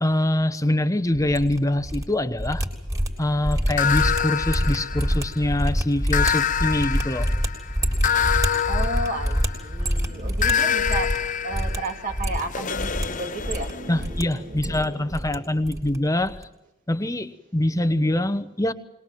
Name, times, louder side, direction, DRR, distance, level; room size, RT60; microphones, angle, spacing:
voice 1, 0.0-2.6 3.2-7.3 13.9-16.5 16.9-18.7, left 1 dB, 15° left, 11 dB, 1.1 m, -24 dB
sound 1, 1.2-2.0 2.3-11.2 11.5-11.8 12.1-13.1 13.4-14.2 14.5-15.4 15.6-16.0 16.2-16.4, equal, 15° right, 3.4 m, -26 dB
sound 2, 3.8-5.5 6.1-9.8 10.4-14.1, left 8 dB, 35° left, 0.7 m, -26 dB
voice 2, 8.1-16.0, right 2 dB, 40° right, 4 dB, 2.8 m, -34 dB
22.0 x 20.5 x 7.7 m, 0.89 s
head